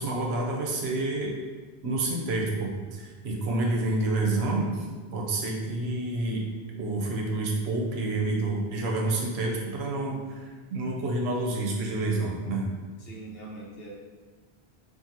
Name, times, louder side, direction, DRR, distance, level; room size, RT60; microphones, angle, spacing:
voice 1, 0.0-1.3 1.8-4.9 5.1-6.5 6.8-12.7, right 2 dB, 80° right, -1 dB, 0.8 m, -28 dB
voice 2, 13.0-13.9, right 2 dB, 65° left, -5 dB, 0.9 m, -42 dB
2.8 x 2.5 x 2.5 m, 1.4 s
omnidirectional pair, 1.1 m